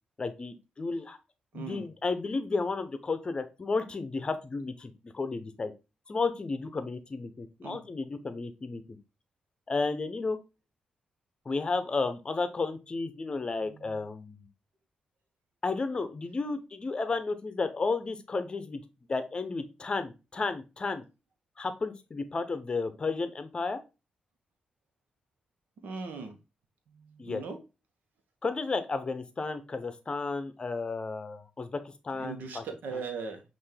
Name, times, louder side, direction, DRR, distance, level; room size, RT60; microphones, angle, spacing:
voice 1, 0.2-1.2 1.5-5.7 6.1-9.0 9.7-10.4 11.5-14.5 15.6-18.8 19.1-21.0 21.6-23.8 27.2-27.4 28.4-32.6 32.9-33.0, left 3 dB, 35° left, 10 dB, 0.7 m, -33 dB
voice 2, 1.5-1.9 7.6-7.8 13.6-14.0 25.8-26.3 26.9-27.6 32.2-33.4, right 5 dB, 85° right, 5 dB, 1.0 m, -39 dB
5.6 x 2.6 x 3.3 m, 0.28 s
cardioid pair, 95°, 3 cm